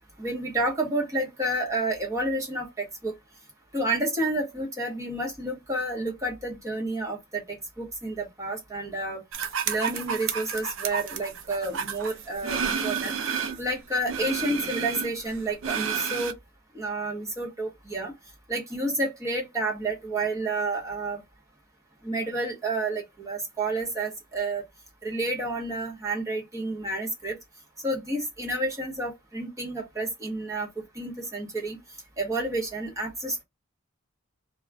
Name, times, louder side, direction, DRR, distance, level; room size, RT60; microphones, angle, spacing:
voice 1, 0.2-3.1 3.7-9.2 9.7-13.1 13.6-16.3 16.7-18.1 18.5-21.2 22.0-24.7 25.0-27.3 27.8-30.7 30.9-31.8 32.2-33.4, right 2 dB, 15° right, 0.9 m, -30 dB
sound 1, 9.3-13.7 14.1-16.3, right 7 dB, 65° right, 0.4 m, -31 dB
2.3 x 2.1 x 3.4 m
head